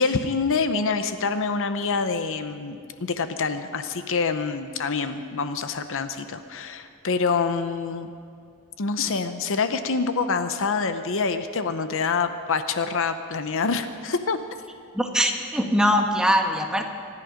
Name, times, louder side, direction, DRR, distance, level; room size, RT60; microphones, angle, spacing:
voice 1, 0.0-8.1 8.8-14.4, left 4 dB, 65° left, 9 dB, 0.8 m, -26 dB
voice 2, 14.9-16.8, equal, 5° right, 3 dB, 1.2 m, -22 dB
25.5 x 11.0 x 5.1 m, 2.4 s
head